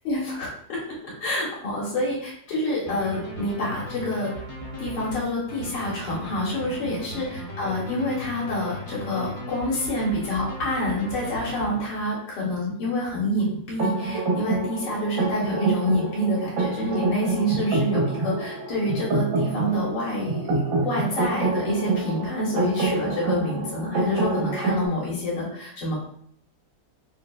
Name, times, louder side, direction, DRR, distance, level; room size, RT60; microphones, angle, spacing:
voice 1, 0.0-4.3 4.8-25.9, left 1 dB, 90° left, -5 dB, 1.8 m, -27 dB
sound 1, 2.9-12.2, equal, 55° left, 0.3 m, -37 dB
sound 2, 13.8-24.9, right 3 dB, 75° right, 1.6 m, -27 dB
5.3 x 2.7 x 2.3 m, 0.65 s
omnidirectional pair, 1.9 m